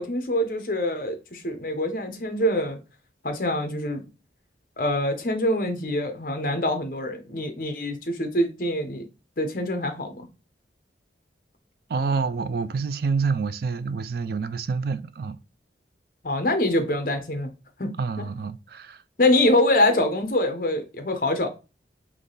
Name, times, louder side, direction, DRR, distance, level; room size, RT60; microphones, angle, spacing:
voice 1, 0.0-2.8 3.2-4.0 4.8-9.1 9.4-10.3 16.2-17.5 17.8-17.9 19.2-21.5, left 1 dB, 50° left, 0.9 m, -24 dB
voice 2, 11.9-15.4 18.0-19.0, right 5 dB, 55° right, 0.3 m, -27 dB
3.7 x 3.1 x 3.9 m
head